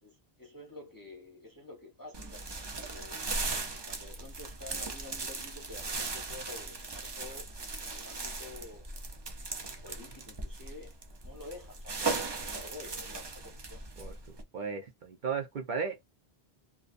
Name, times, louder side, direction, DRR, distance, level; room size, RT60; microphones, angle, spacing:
voice 1, 0.0-2.4 2.8-3.2 3.8-7.5 7.8-8.8 9.6-12.2 12.5-13.8, left 2 dB, 25° left, 0.6 m, -49 dB
sound 1, 2.1-14.4, right 3 dB, 40° right, 0.4 m, -38 dB
voice 2, 14.5-16.0, right 5 dB, 55° right, 0.7 m, -35 dB
2.4 x 2.2 x 2.5 m
omnidirectional pair, 1.1 m